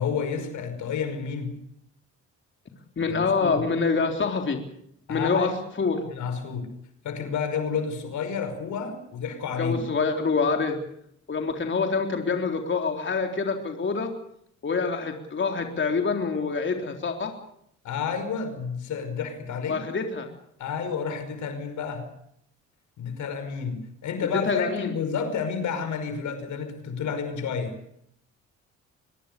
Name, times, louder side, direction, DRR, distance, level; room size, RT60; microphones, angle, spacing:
voice 1, 0.0-1.5 3.1-3.6 5.1-5.6 6.1-6.7 7.0-9.8 17.8-19.8 20.6-22.1 23.0-27.7, left 6 dB, 75° left, 9 dB, 5.4 m, -30 dB
voice 2, 3.0-4.6 5.1-5.5 5.8-6.0 9.6-10.8 11.3-14.1 14.6-17.3 19.7-20.3 24.5-24.9, left 4 dB, 40° left, 4 dB, 3.8 m, -26 dB
24.5 x 21.0 x 6.8 m, 0.71 s
cardioid pair, 90°, 30 cm